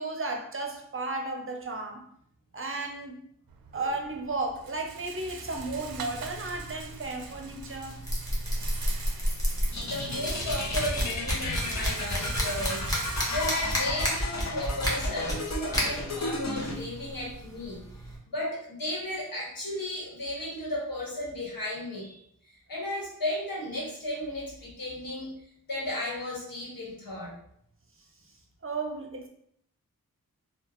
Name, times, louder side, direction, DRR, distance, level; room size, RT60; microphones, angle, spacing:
voice 1, 0.0-2.1 2.5-3.2 3.7-8.0 28.6-29.3, right 3 dB, 35° right, 3 dB, 0.7 m, -34 dB
Rattle, 3.5-14.5, right 6 dB, 75° right, 0.5 m, -45 dB
sound 1, 5.6-18.2, equal, 10° left, 1.4 m, -32 dB
sound 2, 9.7-16.7, left 3 dB, 50° left, 0.8 m, -34 dB
voice 2, 9.8-12.9 13.3-17.8 18.3-22.2 22.7-27.4, left 1 dB, 65° left, -4 dB, 1.4 m, -34 dB
3.6 x 2.3 x 3.0 m, 0.67 s
cardioid pair, 40°, 36 cm